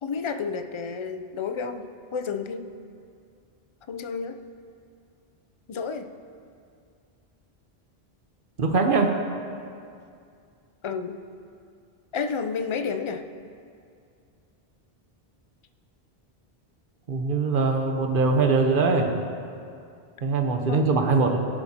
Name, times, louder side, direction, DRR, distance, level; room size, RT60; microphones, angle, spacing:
voice 1, 0.0-2.7 3.9-4.4 5.7-6.1 10.8-11.2 12.1-13.2 20.7-20.9, left 5 dB, 40° left, 8 dB, 0.4 m, -31 dB
voice 2, 8.6-9.1 17.1-19.1 20.2-21.4, right 4 dB, 60° right, 4 dB, 1.1 m, -22 dB
17.5 x 11.0 x 2.9 m, 2.4 s
omnidirectional pair, 1.0 m